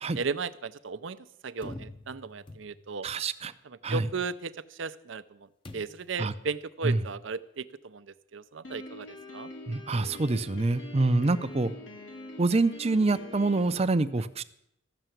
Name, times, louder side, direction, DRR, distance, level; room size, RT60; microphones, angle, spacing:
voice 1, 0.1-3.1 3.6-9.5, right 5 dB, 75° right, 13 dB, 0.6 m, -36 dB
sound 1, 1.6-3.1 5.6-6.2, left 1 dB, 25° left, 0.8 m, -45 dB
voice 2, 3.0-3.5 3.8-4.1 6.2-6.3 6.8-7.0 9.7-11.7 12.4-14.4, right 3 dB, 30° right, 12 dB, 0.6 m, -26 dB
Piano, 8.6-13.8, left 2 dB, 70° left, 2.3 m, -44 dB
14.0 x 6.9 x 9.1 m, 0.77 s
head